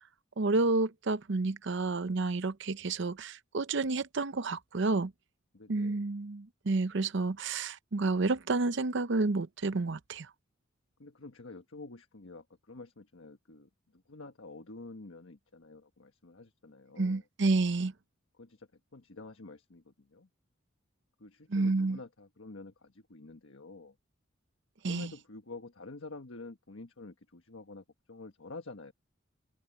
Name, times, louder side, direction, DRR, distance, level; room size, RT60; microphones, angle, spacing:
voice 1, 0.4-5.1 5.7-10.3 17.0-17.9 21.5-22.0 24.8-25.1, right 3 dB, 60° right, 0.7 m, -30 dB
voice 2, 5.5-6.0 11.0-17.2 18.4-20.3 21.2-23.9 24.8-28.9, left 3 dB, 75° left, 1.4 m, -48 dB
head